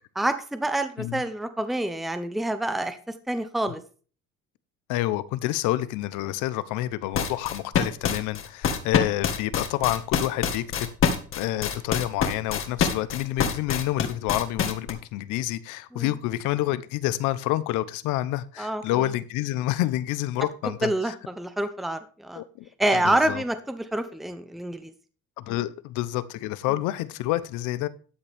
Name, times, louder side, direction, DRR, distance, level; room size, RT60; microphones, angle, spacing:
voice 1, 0.2-3.0 3.3-3.8 15.9-16.1 18.6-19.1 20.6-22.4 22.8-24.9 26.7-26.8, right 1 dB, ahead, 0.8 m, -27 dB
voice 2, 4.9-10.9 11.3-21.1 22.4-23.4 25.4-27.9, left 15 dB, 75° left, 1.0 m, -28 dB
sound 1, 7.1-14.9, left 7 dB, 40° left, 1.8 m, -25 dB
13.0 x 8.8 x 3.6 m
cardioid pair, 140°, 31 cm